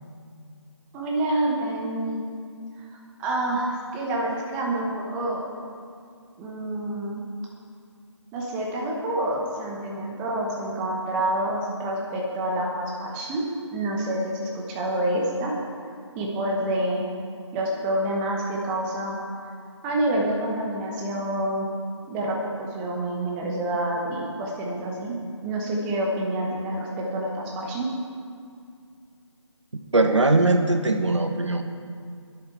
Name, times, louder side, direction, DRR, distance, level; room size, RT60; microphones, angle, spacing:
voice 1, 0.9-2.2 3.2-5.4 6.4-7.2 8.3-13.5 13.7-15.6 16.1-17.0 17.5-19.2 19.8-21.7 22.1-25.2 25.4-27.3 27.6-27.9, right 1 dB, 5° right, -2 dB, 0.9 m, -27 dB
voice 2, 29.9-31.6, right 2 dB, 70° right, 6 dB, 1.5 m, -20 dB
20.0 x 7.9 x 4.6 m, 2.3 s
figure-of-eight pair, 160°, 16 cm